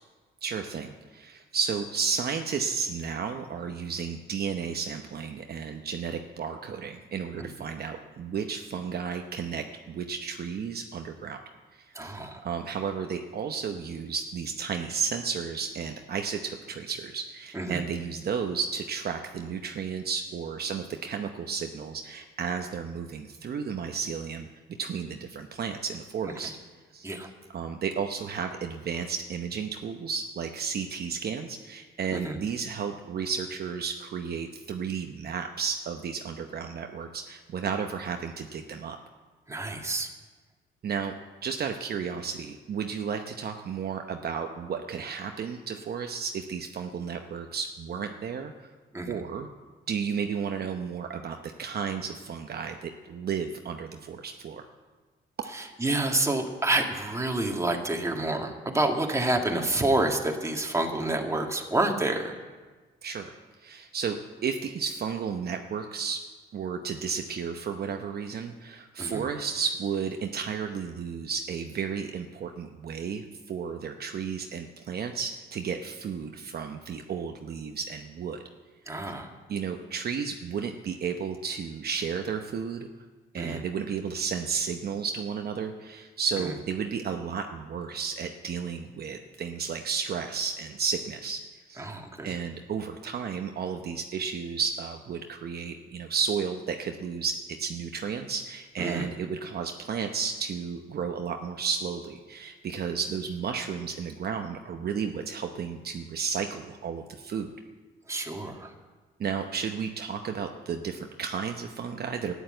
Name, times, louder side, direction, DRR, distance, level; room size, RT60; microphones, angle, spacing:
voice 1, 0.4-11.4 11.7-12.2 12.4-24.5 24.8-26.5 26.9-27.1 27.5-39.0 40.8-41.2 41.4-48.7 49.1-49.5 49.9-54.7 63.0-64.2 64.4-66.2 66.5-78.4 79.5-82.9 83.3-91.4 91.7-91.9 92.2-107.6 109.2-112.3, right 6 dB, 50° right, 5 dB, 0.9 m, -33 dB
voice 2, 11.9-12.4 17.5-17.8 27.0-27.3 32.1-32.4 39.5-40.1 48.9-49.2 55.5-62.3 69.0-69.2 78.9-79.3 83.4-83.6 91.8-92.3 98.8-99.1 108.1-108.7, right 2 dB, 15° right, 2 dB, 1.9 m, -28 dB
13.0 x 10.0 x 7.8 m, 1.3 s
cardioid pair, 90°, 20 cm